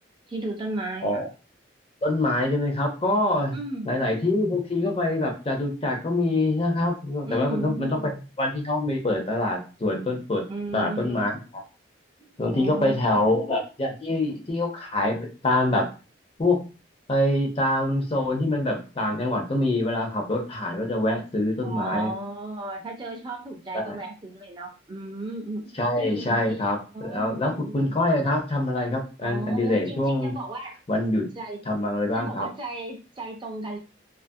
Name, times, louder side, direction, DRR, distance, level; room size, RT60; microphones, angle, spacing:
voice 1, 0.3-1.2 3.5-4.0 7.2-8.2 10.5-11.4 12.5-13.3 21.6-26.6 26.9-28.0 29.2-30.8 31.3-31.6 32.2-33.8, right 2 dB, 25° right, 2 dB, 0.4 m, -35 dB
voice 2, 2.0-3.5 3.8-8.1 8.4-10.4 10.7-11.4 12.4-15.9 16.4-16.6 17.1-22.1 23.7-24.0 25.8-30.3 30.9-31.3 31.7-32.5, left 1 dB, 30° left, 2 dB, 0.5 m, -25 dB
2.5 x 2.4 x 2.6 m, 0.33 s
head